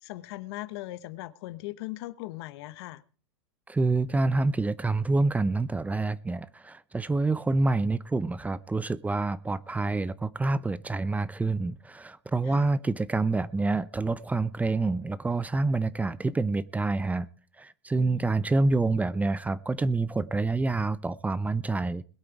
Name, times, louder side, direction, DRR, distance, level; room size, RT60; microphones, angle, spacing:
voice 1, 0.0-3.0 12.5-12.7 18.0-18.3, left 18 dB, 65° left, 1.0 m, -39 dB
voice 2, 3.7-17.3 17.6-22.0, right 3 dB, 10° right, 0.6 m, -27 dB
21.0 x 8.7 x 4.7 m
hypercardioid pair, 115°, 14 cm